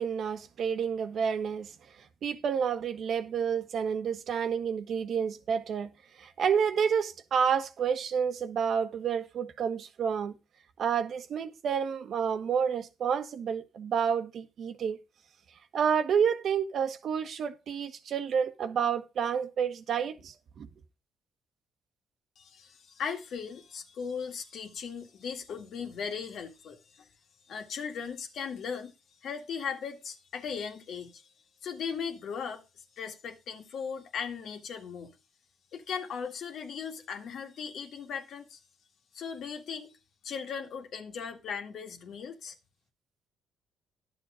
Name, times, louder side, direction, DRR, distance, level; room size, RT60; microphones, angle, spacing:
voice 1, 0.0-1.7 2.2-5.9 6.2-10.3 10.8-15.0 15.7-20.7, right 7 dB, 60° right, 1.3 m, -29 dB
voice 2, 22.4-27.1 27.5-28.9 29.2-31.3 31.6-32.6 33.0-35.2 35.7-38.6 39.1-39.9 40.2-42.6, left 6 dB, 65° left, 2.0 m, -38 dB
11.0 x 7.5 x 5.0 m
cardioid pair, 80°, 0 cm